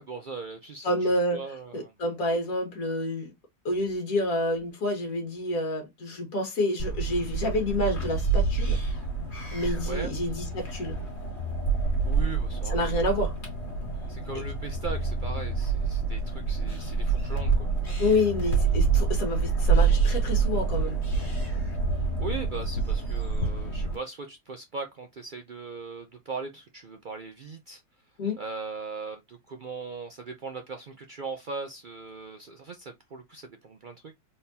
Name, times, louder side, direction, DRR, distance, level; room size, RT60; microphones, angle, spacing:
voice 1, 0.0-0.9 1.3-1.9 9.9-10.1 12.0-12.9 14.1-17.7 22.2-27.8 28.4-34.1, right 4 dB, 80° right, 0.4 m, -39 dB
voice 2, 0.8-1.4 1.7-3.3 3.7-8.8 9.5-11.0 12.7-13.3 18.0-21.0 28.2-28.4, left 1 dB, 60° left, 2.0 m, -28 dB
sound 1, 6.8-24.0, right 4 dB, 45° left, 2.2 m, -27 dB
4.1 x 3.7 x 2.7 m
omnidirectional pair, 1.7 m